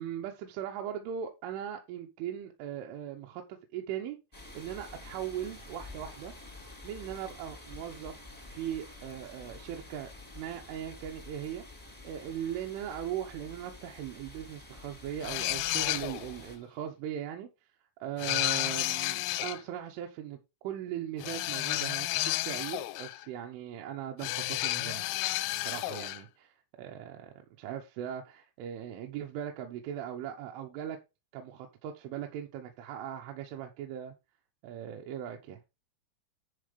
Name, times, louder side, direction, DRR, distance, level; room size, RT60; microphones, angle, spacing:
voice 1, 0.0-6.3 6.8-11.6 12.0-17.5 18.0-25.0 25.6-31.0 31.3-34.1 34.6-35.6, right 10 dB, 80° right, 3.3 m, -39 dB
sound 1, 4.3-16.6, left 2 dB, 25° left, 0.4 m, -49 dB
sound 2, 15.2-16.4 18.2-19.6 21.2-23.3 24.2-26.2, left 17 dB, 85° left, 3.4 m, -32 dB
10.5 x 4.5 x 5.0 m
omnidirectional pair, 5.8 m